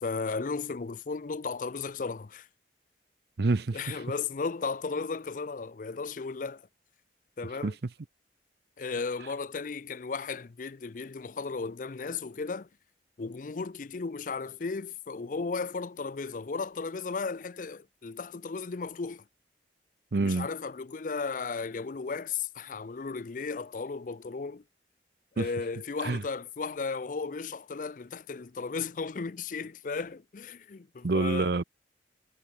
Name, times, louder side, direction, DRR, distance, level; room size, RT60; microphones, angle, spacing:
voice 1, 0.0-2.5 3.7-6.7 7.4-7.8 8.8-12.7 13.2-19.2 20.1-24.6 25.4-31.5, left 4 dB, 45° left, 0.5 m, -35 dB
voice 2, 3.4-3.8 7.6-7.7 20.1-20.5 25.4-25.5 26.0-26.2 31.0-31.6, right 3 dB, 60° right, 0.6 m, -26 dB
head